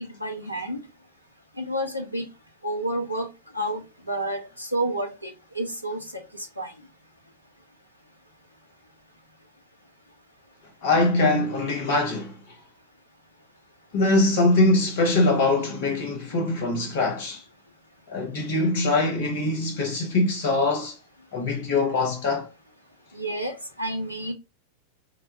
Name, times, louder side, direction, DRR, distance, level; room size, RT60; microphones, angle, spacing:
voice 1, 0.2-0.8 1.6-2.2 2.6-3.3 3.6-3.8 4.1-4.4 4.7-5.1 5.6-6.0 6.6-6.7 23.2-23.5 23.8-24.3, right 1 dB, 90° right, 0.5 m, -28 dB
voice 2, 10.8-12.3 13.9-17.4 18.1-20.9 21.3-22.5, left 2 dB, 50° left, 0.9 m, -23 dB
2.9 x 2.2 x 2.8 m
figure-of-eight pair, 90°, 0 cm